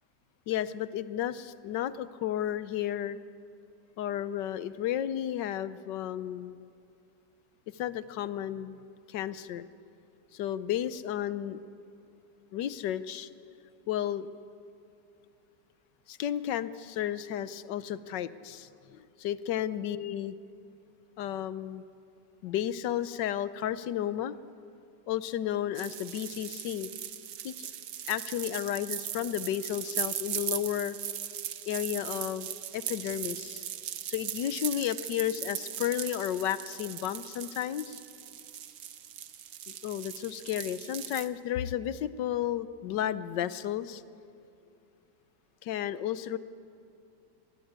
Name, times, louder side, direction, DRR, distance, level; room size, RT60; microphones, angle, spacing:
voice 1, 0.5-3.2 4.0-6.6 7.7-8.8 9.1-9.7 10.3-11.6 12.5-13.3 13.9-14.3 16.1-20.4 21.2-21.8 22.4-24.4 25.1-26.9 27.4-27.7 28.1-31.0 31.7-33.6 34.1-38.0 39.7-44.0 45.6-46.4, left 11 dB, 90° left, 15 dB, 1.4 m, -33 dB
sound 1, 25.8-41.3, right 10 dB, 80° right, 1.6 m, -39 dB
25.0 x 20.0 x 8.8 m, 2.6 s
omnidirectional pair, 1.8 m